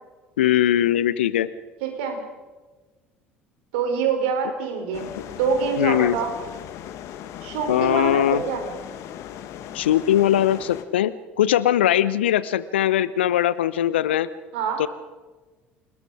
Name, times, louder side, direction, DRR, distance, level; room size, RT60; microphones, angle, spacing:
voice 1, 0.4-1.5 5.8-6.2 7.7-8.4 9.7-14.3 14.8-14.9, left 12 dB, 75° left, 17 dB, 0.8 m, -20 dB
voice 2, 1.8-2.2 3.7-6.3 7.4-8.6 14.5-14.8, right 5 dB, 65° right, 4 dB, 4.4 m, -25 dB
sound 1, 4.9-10.8, left 10 dB, 55° left, 1.6 m, -38 dB
28.0 x 19.5 x 4.9 m, 1.3 s
figure-of-eight pair, 60°, 6 cm